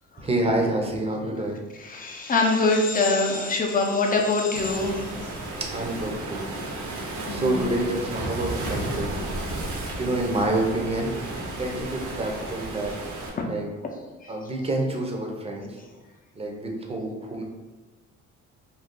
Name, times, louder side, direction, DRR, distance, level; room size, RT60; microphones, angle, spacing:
voice 1, 0.2-1.6 5.6-6.5 7.3-9.1 9.9-11.1 11.6-13.0 13.5-13.7 14.3-15.8 16.3-17.4, right 1 dB, 20° right, 1 dB, 0.6 m, -27 dB
voice 2, 1.9-5.0 7.3-7.6 13.4-13.5, left 3 dB, 30° left, 1 dB, 0.6 m, -23 dB
Waves surf, 4.5-13.3, right 2 dB, 70° right, 0.8 m, -33 dB
2.6 x 2.3 x 3.6 m, 1.2 s
cardioid pair, 90°, 30 cm